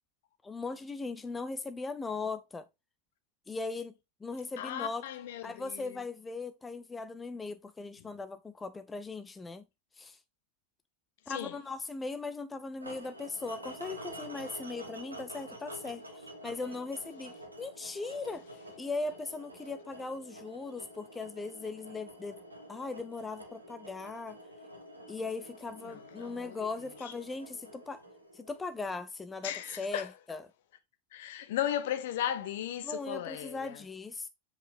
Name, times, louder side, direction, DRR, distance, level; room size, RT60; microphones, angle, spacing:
voice 1, 0.4-2.7 3.5-3.9 4.2-5.0 5.4-9.7 10.0-10.2 11.3-17.3 17.6-18.4 18.8-22.4 22.7-24.4 25.1-28.0 28.3-29.5 29.8-30.4 32.8-34.3, left 3 dB, 15° left, 0.5 m, -39 dB
voice 2, 4.6-6.0 8.0-8.1 11.3-11.6 25.8-26.7 27.0-27.1 29.4-30.1 31.1-33.8, left 11 dB, 55° left, 1.1 m, -36 dB
sound 1, 12.8-28.9, equal, 85° right, 1.7 m, -48 dB
7.8 x 4.9 x 3.4 m
figure-of-eight pair, 90°, 0 cm